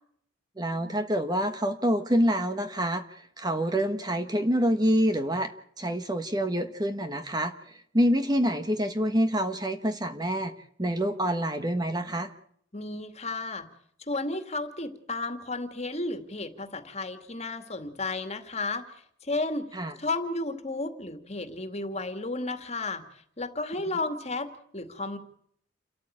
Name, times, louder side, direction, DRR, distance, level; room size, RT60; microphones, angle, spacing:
voice 1, 0.6-5.5 5.8-10.5 10.8-12.3 19.7-19.9, equal, 20° right, 8 dB, 1.3 m, -27 dB
voice 2, 12.7-13.7 14.1-18.8 19.2-19.7 20.0-25.2, left 2 dB, 35° left, 8 dB, 2.2 m, -33 dB
29.0 x 13.5 x 8.7 m, 0.68 s
head